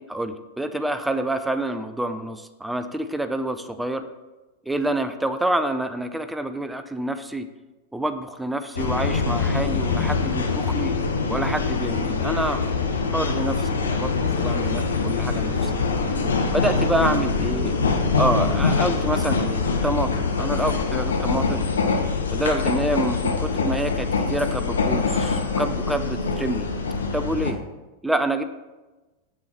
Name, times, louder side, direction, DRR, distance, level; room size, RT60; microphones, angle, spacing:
voice 1, 0.0-4.1 4.7-7.5 7.9-10.9 11.3-12.7 13.1-15.7 16.5-17.7 18.2-21.7 22.3-26.7 27.1-27.6 28.0-28.4, right 1 dB, 5° right, 9 dB, 0.6 m, -27 dB
sound 1, 8.8-27.5, left 4 dB, 70° left, 0.9 m, -24 dB
sound 2, 12.0-22.0, right 3 dB, 25° right, 1.4 m, -41 dB
8.4 x 8.1 x 4.3 m, 1.1 s
figure-of-eight pair, 90°, 0 cm